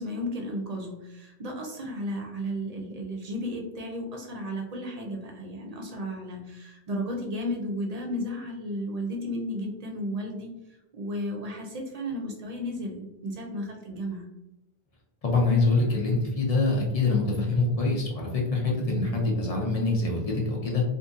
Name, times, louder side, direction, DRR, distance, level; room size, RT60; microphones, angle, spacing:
voice 1, 0.0-10.5 10.9-14.2, equal, 45° right, 1 dB, 0.6 m, -34 dB
voice 2, 15.2-20.8, left 3 dB, 40° left, -1 dB, 0.7 m, -25 dB
2.7 x 2.5 x 2.4 m, 0.93 s
omnidirectional pair, 1.0 m